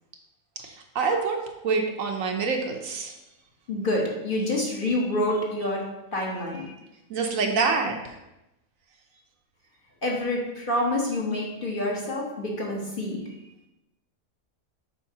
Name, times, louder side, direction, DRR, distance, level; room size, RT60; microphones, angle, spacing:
voice 1, 0.6-3.2 6.5-6.6 7.1-8.2, right 4 dB, 70° right, 3 dB, 1.1 m, -27 dB
voice 2, 3.7-5.9 6.1-6.7 10.0-13.2, left 1 dB, 40° left, -3 dB, 1.1 m, -27 dB
7.2 x 4.9 x 2.8 m, 0.93 s
omnidirectional pair, 1.5 m